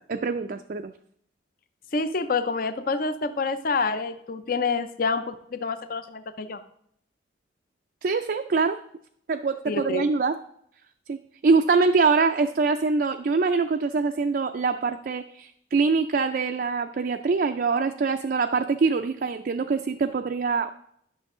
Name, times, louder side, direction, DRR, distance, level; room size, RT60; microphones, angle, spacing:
voice 1, 0.1-0.9 8.0-8.8 9.3-10.4 11.1-20.7, right 4 dB, 50° right, 6 dB, 0.3 m, -24 dB
voice 2, 1.9-6.6 9.7-10.0, left 4 dB, 45° left, 11 dB, 0.5 m, -27 dB
11.0 x 6.2 x 3.7 m, 0.70 s
head